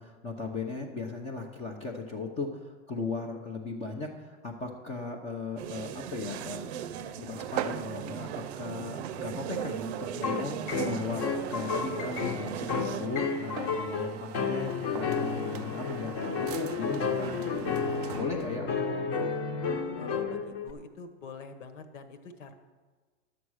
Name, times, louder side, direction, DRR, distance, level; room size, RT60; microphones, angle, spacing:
voice 1, 0.0-6.7 7.2-10.6 10.8-11.2 11.5-17.3 18.1-19.2, left 3 dB, 15° left, -1 dB, 0.8 m, -37 dB
sound 1, 5.6-13.1, right 9 dB, 55° right, 0.7 m, -38 dB
sound 2, 7.3-18.6, right 11 dB, 35° right, 0.4 m, -42 dB
sound 3, 10.0-20.7, left 5 dB, 35° left, 1.1 m, -32 dB
voice 2, 17.9-18.5 20.0-22.5, left 5 dB, 65° left, 9 dB, 1.5 m, -46 dB
11.5 x 7.3 x 6.4 m, 1.4 s
supercardioid pair, 150°, 40 cm